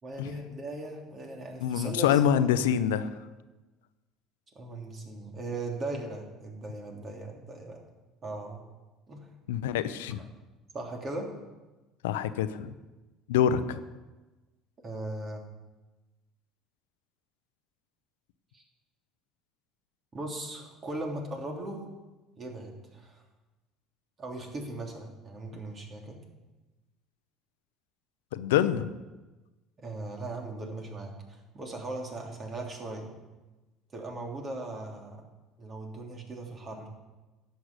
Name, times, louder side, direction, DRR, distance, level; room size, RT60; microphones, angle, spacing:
voice 1, 0.0-2.7 4.5-7.8 8.2-8.6 9.1-9.3 10.2-10.3 10.7-11.3 14.8-15.4 18.5-18.6 20.1-21.9 22.4-23.2 24.2-26.2 29.8-33.2 33.9-35.2 35.6-36.9, right 2 dB, 35° right, 1 dB, 3.1 m, -38 dB
voice 2, 1.6-3.1 9.5-10.2 12.0-12.7 13.3-13.8 28.3-28.9, left 9 dB, 90° left, 12 dB, 0.6 m, -25 dB
11.0 x 6.5 x 8.1 m, 1.1 s
supercardioid pair, 80°, 0 cm